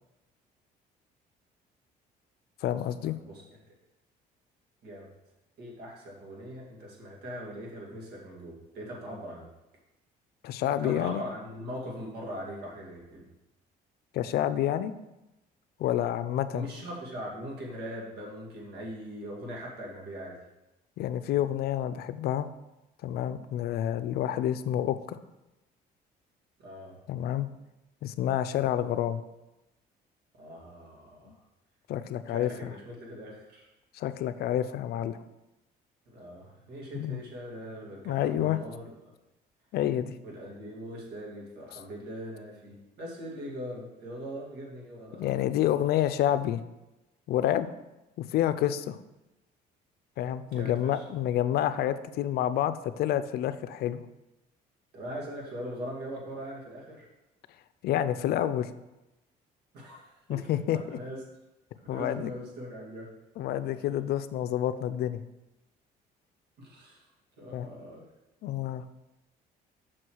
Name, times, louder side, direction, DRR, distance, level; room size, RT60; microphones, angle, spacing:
voice 1, 2.6-3.2 10.4-11.2 14.1-14.9 15.8-16.7 21.0-22.5 23.0-25.2 27.1-27.5 28.0-29.2 31.3-31.4 31.9-32.7 33.9-35.2 36.9-37.2 38.0-38.6 39.7-40.2 45.2-46.6 47.3-47.7 48.2-49.0 50.2-54.0 57.8-58.7 60.3-60.8 61.9-62.3 63.4-65.2 67.5-67.7 68.4-68.8, left 11 dB, 70° left, 12 dB, 0.5 m, -28 dB
voice 2, 5.6-9.5 10.8-13.3 16.5-20.4 26.6-27.0 30.4-31.4 32.3-33.7 36.1-38.9 40.2-45.3 50.5-51.0 54.9-57.1 59.7-60.4 60.7-61.2 61.8-63.1 66.6-67.0 67.4-68.1, equal, 75° right, -2 dB, 2.4 m, -41 dB
6.0 x 4.7 x 6.3 m, 0.99 s
cardioid pair, 110°, 17 cm